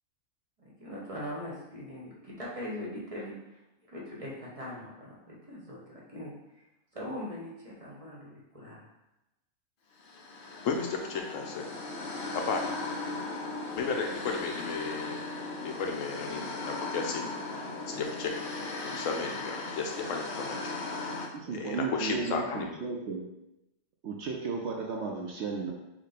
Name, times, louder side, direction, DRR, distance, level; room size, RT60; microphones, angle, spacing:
voice 1, 0.8-6.3 6.9-8.8, left 1 dB, 30° right, -4 dB, 0.9 m, -41 dB
sound 1, 10.0-21.3, left 3 dB, 55° left, 0.6 m, -37 dB
voice 2, 10.6-11.7 12.3-12.9 13.7-15.2 15.6-20.6 20.9-22.8, left 4 dB, 70° left, 3 dB, 0.9 m, -34 dB
voice 3, 21.3-23.2 24.0-25.7, right 5 dB, 65° right, 0 dB, 0.8 m, -34 dB
5.9 x 2.2 x 4.1 m, 0.96 s
omnidirectional pair, 1.5 m